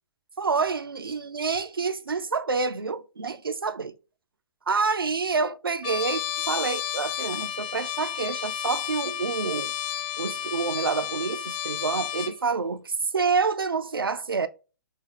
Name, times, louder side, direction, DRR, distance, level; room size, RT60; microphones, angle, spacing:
voice 1, 0.4-3.9 4.7-9.7 10.2-14.5, right 4 dB, 75° right, 0.5 m, -28 dB
Trumpet, 5.8-12.4, left 11 dB, 30° left, 0.4 m, -32 dB
5.7 x 2.7 x 3.0 m
figure-of-eight pair, 120°, 12 cm